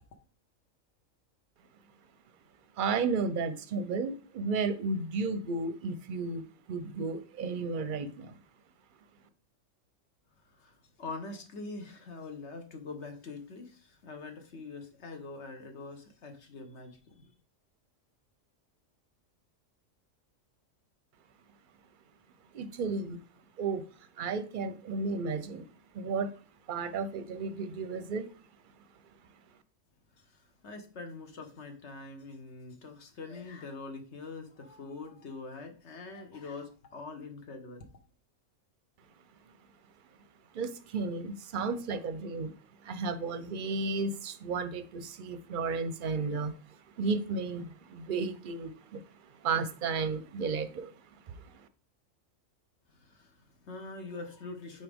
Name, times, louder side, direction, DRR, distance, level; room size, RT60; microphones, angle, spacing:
voice 1, 2.8-6.4 6.7-8.4 22.5-23.2 23.6-23.8 24.2-25.7 25.9-26.3 26.7-28.3 40.5-42.5 42.8-46.5 47.0-50.9 51.3-51.7, right 4 dB, 50° right, 0.7 m, -33 dB
voice 2, 10.4-17.3 30.1-37.8 52.9-54.8, left 3 dB, 60° left, 1.4 m, -44 dB
8.8 x 4.0 x 3.5 m
omnidirectional pair, 1.3 m